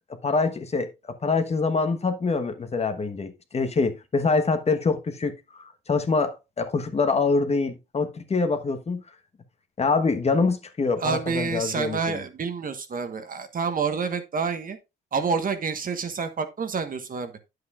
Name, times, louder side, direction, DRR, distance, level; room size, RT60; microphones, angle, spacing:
voice 1, 0.2-0.9 1.2-9.0 9.8-12.2, left 4 dB, 30° left, 1.1 m, -25 dB
voice 2, 11.0-14.8 15.1-17.3, right 5 dB, 45° right, 1.3 m, -28 dB
9.4 x 7.9 x 2.4 m
cardioid pair, 90°, 20 cm